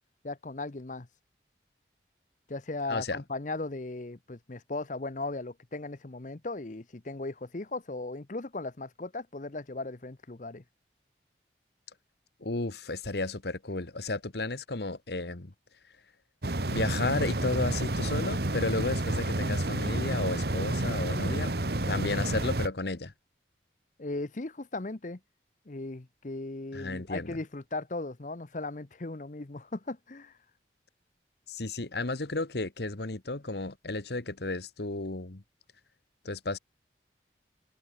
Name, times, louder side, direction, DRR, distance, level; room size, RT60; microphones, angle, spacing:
voice 1, 0.2-1.1 2.5-10.6 24.0-25.2 25.7-30.3, left 2 dB, 45° left, 0.9 m, -37 dB
voice 2, 2.9-3.2 12.4-15.5 16.7-21.5 21.9-23.1 26.7-27.4 31.5-35.4 36.2-36.6, left 2 dB, 65° left, 1.4 m, -33 dB
sound 1, 16.4-22.7, right 1 dB, 60° right, 1.6 m, -30 dB
head